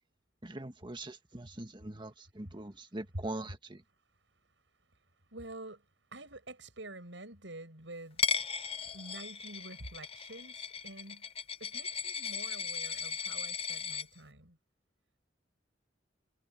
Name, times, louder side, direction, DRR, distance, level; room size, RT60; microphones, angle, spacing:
voice 1, 0.4-3.8, right 1 dB, 25° right, 1.7 m, -42 dB
voice 2, 4.9-5.9 6.1-8.2 8.9-11.3 11.6-14.6, right 2 dB, 80° right, 7.7 m, -48 dB
Coin (dropping), 8.2-14.0, left 6 dB, 30° left, 0.8 m, -36 dB
head